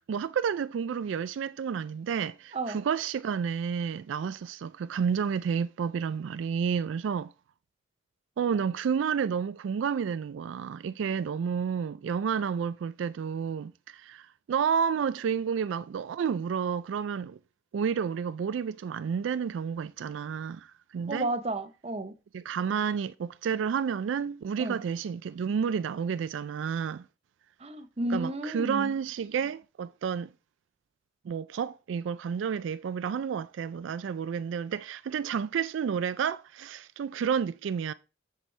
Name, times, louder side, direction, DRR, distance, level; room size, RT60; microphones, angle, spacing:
voice 1, 0.0-7.3 8.4-17.4 17.7-21.3 22.3-27.1 28.1-30.3 31.2-37.9, right 7 dB, 75° right, 0.3 m, -30 dB
voice 2, 21.1-22.1 24.6-24.8 27.6-28.9, right 2 dB, 35° right, 0.7 m, -32 dB
7.4 x 6.8 x 3.2 m
head